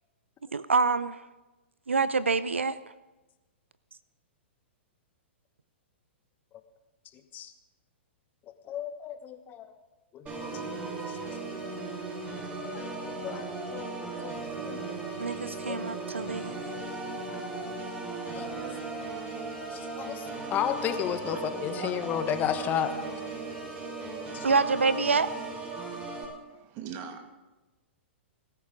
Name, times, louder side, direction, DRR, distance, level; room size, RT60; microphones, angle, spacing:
voice 1, 0.5-1.2 1.9-2.8 15.2-16.5 24.4-25.3, right 4 dB, 85° right, 16 dB, 0.5 m, -26 dB
voice 2, 8.6-9.7 10.1-10.7 11.1-11.2 11.4-12.0 12.7-13.4 13.7-14.4 14.6-14.8 15.4-15.8 18.3-18.6 19.7-23.0 24.3-24.5, left 9 dB, 30° left, 9 dB, 1.3 m, -33 dB
Organ, 10.3-26.3, right 3 dB, 20° right, 5.1 m, -37 dB
voice 3, 24.0-24.5 26.5-27.3, right 7 dB, 40° right, 6 dB, 2.2 m, -42 dB
21.0 x 14.0 x 3.9 m, 1.1 s
figure-of-eight pair, 110°, 6 cm